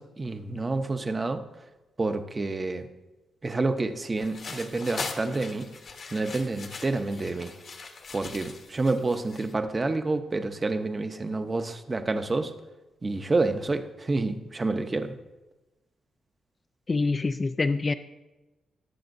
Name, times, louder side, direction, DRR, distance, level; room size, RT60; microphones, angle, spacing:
voice 1, 0.0-1.4 2.0-2.9 3.4-5.7 6.1-7.5 8.1-12.5 13.0-15.2, right 3 dB, 25° right, 8 dB, 0.7 m, -28 dB
sound 1, 4.2-9.5, left 4 dB, 50° left, 1.1 m, -41 dB
voice 2, 16.9-17.9, left 3 dB, 30° left, 9 dB, 0.3 m, -25 dB
20.0 x 6.8 x 2.6 m, 1.1 s
cardioid pair, 120°, 0 cm